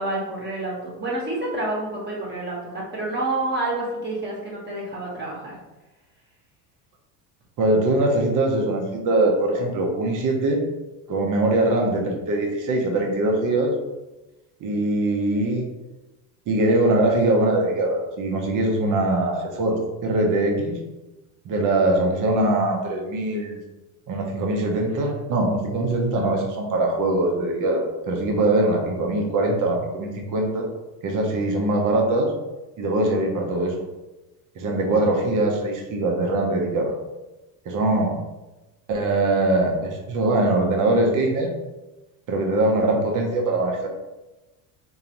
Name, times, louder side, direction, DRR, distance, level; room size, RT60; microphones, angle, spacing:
voice 1, 0.0-5.5, right 2 dB, 25° right, -4 dB, 1.3 m, -28 dB
voice 2, 7.6-10.6 11.1-13.7 14.6-15.6 16.5-20.8 21.4-23.6 24.1-30.7 31.0-32.3 32.8-33.7 34.6-37.0 37.6-38.1 38.9-41.5 42.3-43.9, right 2 dB, 45° right, 1 dB, 1.0 m, -22 dB
3.9 x 2.9 x 2.9 m, 1.1 s
supercardioid pair, 105°, 42 cm